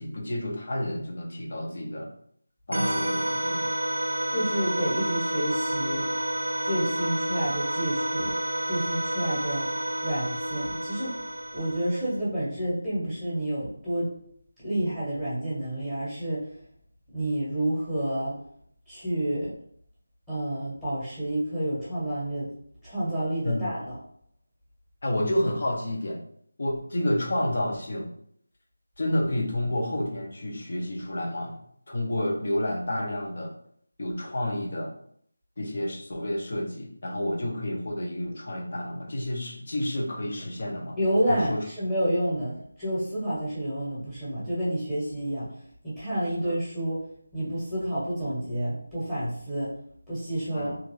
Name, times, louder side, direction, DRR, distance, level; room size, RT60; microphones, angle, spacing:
voice 1, 0.0-2.1 2.7-3.7 23.4-23.7 25.0-26.2 26.6-28.1 29.0-31.6 31.9-33.5 34.0-34.9 35.6-41.0 41.3-41.6 46.4-46.5 50.5-50.7, left 1 dB, 45° left, 1 dB, 0.9 m, -30 dB
sound 1, 2.7-12.2, right 1 dB, 75° right, 0.6 m, -29 dB
voice 2, 4.3-6.0 6.6-8.3 8.7-9.7 10.0-11.2 11.5-14.1 14.6-16.4 17.1-18.3 18.9-19.5 20.3-22.5 22.8-23.9 40.9-45.5 45.8-47.0 47.3-49.7 50.1-50.8, right 1 dB, 10° left, -11 dB, 1.2 m, -29 dB
3.4 x 2.5 x 3.1 m, 0.65 s
figure-of-eight pair, 160°, 0 cm